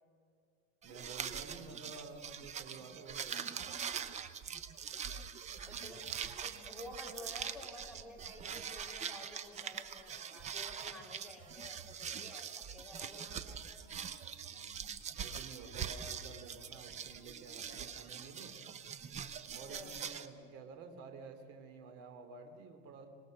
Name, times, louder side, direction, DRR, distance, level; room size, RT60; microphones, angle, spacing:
sound 1, 0.8-20.3, right 7 dB, 20° right, 0.7 m, -43 dB
voice 1, 0.8-3.7 14.3-15.0 15.2-18.6 19.5-23.1, right 4 dB, 45° right, 6 dB, 2.9 m, -51 dB
voice 2, 5.7-13.9 19.6-20.0, left 1 dB, ahead, 0 dB, 3.3 m, -52 dB
26.0 x 19.0 x 6.5 m, 2.3 s
supercardioid pair, 150°, 35 cm